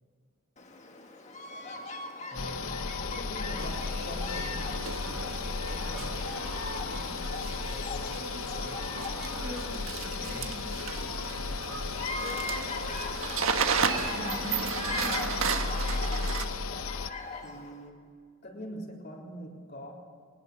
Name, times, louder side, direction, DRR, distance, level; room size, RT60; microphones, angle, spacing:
Bird vocalization bird call bird song, 0.6-17.8, left 3 dB, 35° left, 1.7 m, -40 dB
sound 1, 2.3-17.1, left 4 dB, 80° left, 0.9 m, -35 dB
voice 1, 2.3-5.4 5.7-6.4 6.8-7.2 7.5-9.0 10.1-10.7 11.0-12.4 13.8-14.5 17.4-18.1 18.4-19.9, equal, 50° left, -2 dB, 3.8 m, -45 dB
sound 2, 3.6-16.5, right 6 dB, 80° right, 1.5 m, -35 dB
voice 2, 9.2-10.8 13.8-15.3, left 1 dB, ahead, -3 dB, 2.9 m, -43 dB
22.0 x 19.5 x 6.9 m, 2.2 s
head